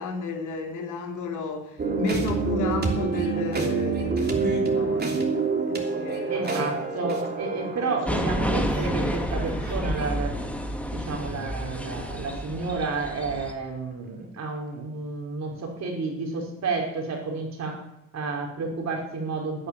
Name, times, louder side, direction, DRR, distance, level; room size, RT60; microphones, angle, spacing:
voice 1, 0.0-7.2 7.6-8.7, left 4 dB, 80° left, 3 dB, 3.0 m, -33 dB
sound 1, 1.8-10.1, right 4 dB, 35° right, 3.1 m, -28 dB
voice 2, 6.3-10.5 10.9-17.8 18.1-19.7, right 4 dB, 60° right, 0 dB, 4.9 m, -31 dB
sound 2, 8.1-13.5, equal, 5° left, 1.9 m, -30 dB
11.5 x 9.7 x 9.0 m, 0.81 s
cardioid pair, 90°, 30 cm